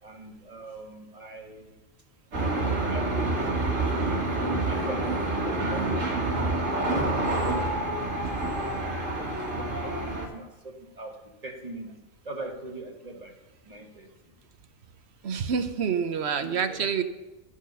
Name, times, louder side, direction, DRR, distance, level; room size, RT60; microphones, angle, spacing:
voice 1, 0.0-1.7 2.9-8.6 9.0-13.3 13.6-14.1 16.4-16.8, right 1 dB, 30° right, 2 dB, 1.4 m, -41 dB
sound 1, 2.3-10.3, right 2 dB, 85° right, 2.2 m, -27 dB
voice 2, 15.2-17.0, right 6 dB, 60° right, 9 dB, 1.0 m, -27 dB
12.5 x 6.5 x 5.4 m, 1.1 s
omnidirectional pair, 1.3 m